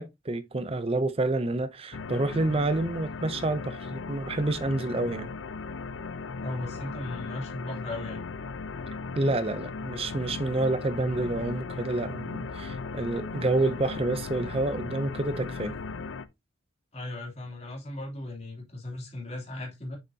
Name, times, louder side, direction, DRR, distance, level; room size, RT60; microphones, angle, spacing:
voice 1, 0.0-5.3 9.2-15.8, right 2 dB, 30° right, 0.6 m, -28 dB
sound 1, 1.9-16.3, left 4 dB, 70° left, 0.7 m, -37 dB
voice 2, 6.4-8.2 16.9-20.0, left 2 dB, 30° left, 2.9 m, -37 dB
6.6 x 5.9 x 2.8 m
head